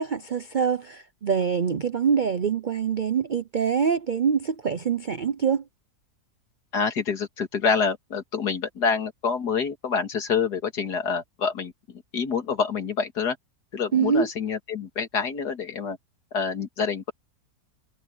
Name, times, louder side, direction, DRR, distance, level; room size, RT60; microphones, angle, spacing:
voice 1, 0.0-5.6 13.9-14.3, right 6 dB, 70° right, 0.4 m, -24 dB
voice 2, 6.7-13.4 13.7-16.0 16.3-17.1, left 5 dB, 75° left, 2.6 m, -27 dB
omnidirectional pair, 1.7 m